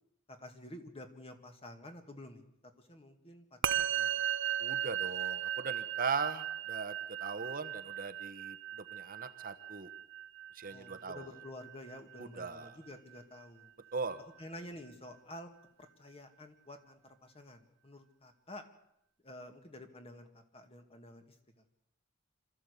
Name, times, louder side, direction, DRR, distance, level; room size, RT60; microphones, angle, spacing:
voice 1, 0.3-2.4 2.8-4.1 10.7-13.7 14.4-15.5 15.8-18.6 19.2-21.4, left 1 dB, 30° left, 6 dB, 2.2 m, -50 dB
Musical instrument, 3.6-13.2, right 10 dB, 60° right, 0.7 m, -37 dB
voice 2, 4.6-6.9 7.2-9.9 10.5-11.3 12.2-12.7 13.9-14.2, right 5 dB, 45° right, 9 dB, 1.2 m, -39 dB
26.0 x 14.0 x 8.3 m, 0.78 s
head